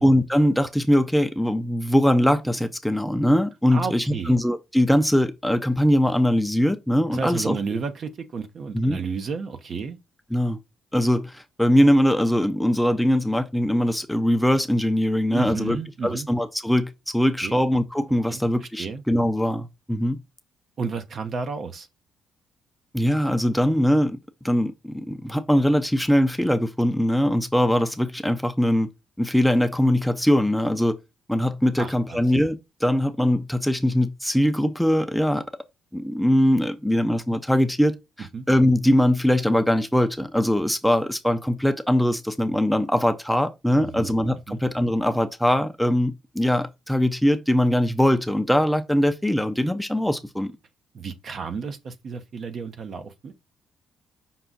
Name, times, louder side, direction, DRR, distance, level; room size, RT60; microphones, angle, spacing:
voice 1, 0.0-7.6 8.7-9.0 10.3-10.6 10.9-15.8 16.0-20.2 22.9-24.2 24.4-28.9 29.2-30.9 31.3-35.4 35.9-50.5, equal, ahead, 0.6 m, -21 dB
voice 2, 3.7-4.3 7.1-10.0 15.3-16.3 17.4-17.6 18.3-19.0 20.8-21.9 31.8-32.2 38.3-38.5 43.8-44.2 44.5-44.6 50.9-53.3, right 5 dB, 55° right, 0.8 m, -32 dB
5.7 x 2.4 x 3.9 m
cardioid pair, 90°, 0 cm